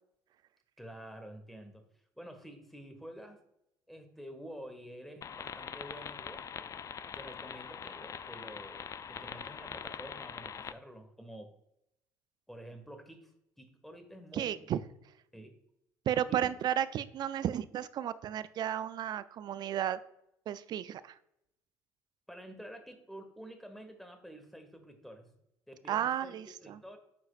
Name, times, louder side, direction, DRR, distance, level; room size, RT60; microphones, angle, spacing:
voice 1, 0.8-1.8 2.2-3.4 3.9-6.4 7.1-11.5 12.5-13.3 13.6-14.7 15.3-15.6 16.3-16.5 22.3-25.3 25.7-27.0, equal, ahead, 7 dB, 1.2 m, -49 dB
sound 1, 5.2-10.7, left 7 dB, 35° left, 0.4 m, -43 dB
voice 2, 14.3-14.8 16.1-20.0 20.5-21.1 25.9-26.8, right 10 dB, 50° right, 15 dB, 0.4 m, -33 dB
9.8 x 4.0 x 2.4 m, 0.80 s
hypercardioid pair, 65°, 9 cm